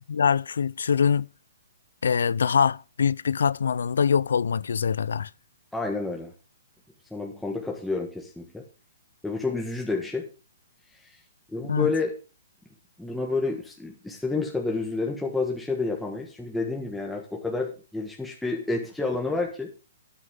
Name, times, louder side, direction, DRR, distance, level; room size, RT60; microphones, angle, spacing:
voice 1, 0.1-1.3 2.0-5.3 11.7-11.9, left 6 dB, 80° left, 0.5 m, -23 dB
voice 2, 5.7-6.3 7.1-8.6 9.2-10.3 10.9-11.2 11.5-12.2 13.0-19.7, left 3 dB, 5° left, 1.6 m, -29 dB
13.5 x 9.6 x 3.7 m
hypercardioid pair, 150°, 0 cm